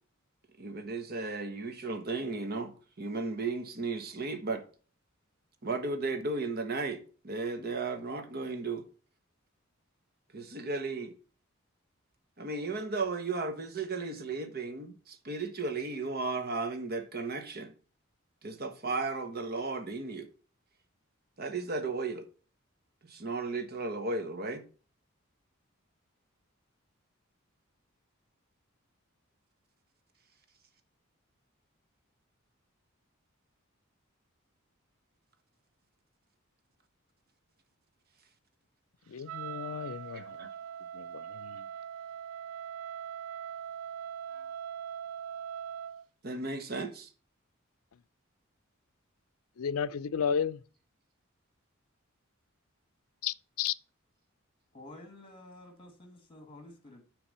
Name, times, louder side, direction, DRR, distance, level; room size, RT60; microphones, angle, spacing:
voice 1, 0.6-4.6 5.6-7.0 7.2-8.8 10.3-11.1 12.4-17.7 18.4-20.3 21.4-22.2 23.1-24.6 40.4-40.5 46.2-47.1, right 3 dB, 50° right, 1.2 m, -35 dB
voice 2, 39.1-40.5 40.9-41.7 49.6-50.6 53.2-53.7, left 7 dB, 85° left, 0.5 m, -33 dB
Wind instrument woodwind instrument, 39.3-46.1, right 8 dB, 70° right, 0.3 m, -41 dB
voice 3, 54.7-57.0, left 1 dB, 25° left, 1.7 m, -50 dB
9.5 x 3.4 x 6.6 m
head